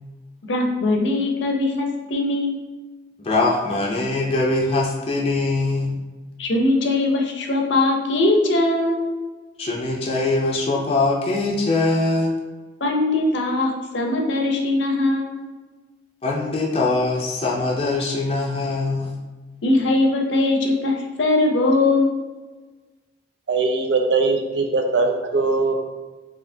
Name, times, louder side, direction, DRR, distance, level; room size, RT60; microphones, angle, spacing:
voice 1, 0.5-2.6 6.4-9.0 12.8-15.5 19.6-22.1, left 2 dB, 75° left, 2 dB, 0.6 m, -20 dB
voice 2, 3.2-6.0 9.6-12.3 16.2-19.2, left 2 dB, 30° left, -2 dB, 0.5 m, -22 dB
voice 3, 23.5-25.7, right 3 dB, 65° right, 4 dB, 0.5 m, -20 dB
4.2 x 2.8 x 2.7 m, 1.3 s
head